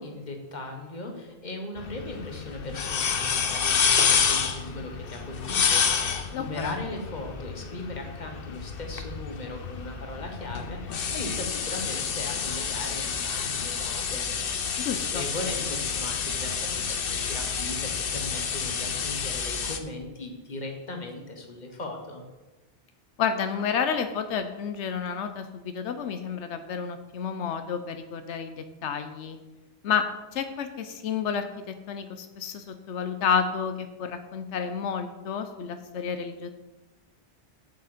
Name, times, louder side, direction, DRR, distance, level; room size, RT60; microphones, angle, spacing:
voice 1, 0.0-14.3 15.0-22.2, left 2 dB, 40° left, 3 dB, 1.5 m, -38 dB
sound 1, 1.8-19.8, left 6 dB, 60° left, 0.9 m, -29 dB
voice 2, 6.3-6.7 14.8-15.2 23.2-29.4 29.8-36.5, left 7 dB, 90° left, 8 dB, 1.0 m, -30 dB
8.2 x 7.8 x 5.0 m, 1.1 s
omnidirectional pair, 1.2 m